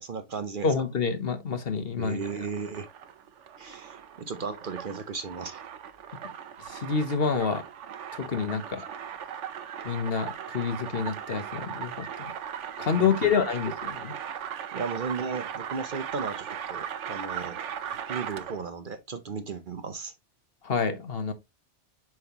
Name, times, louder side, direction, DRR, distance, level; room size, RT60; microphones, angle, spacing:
voice 1, 0.0-0.7 2.0-2.9 3.6-5.6 13.0-13.3 14.7-17.6 18.1-20.1, right 5 dB, 50° right, 0.8 m, -35 dB
voice 2, 0.6-2.4 6.7-7.6 8.1-8.9 9.8-12.3 12.8-14.2 20.6-21.3, left 5 dB, 55° left, 1.2 m, -28 dB
sound 1, 2.0-18.7, right 8 dB, 80° right, 1.1 m, -38 dB
7.7 x 5.5 x 2.9 m
omnidirectional pair, 1.2 m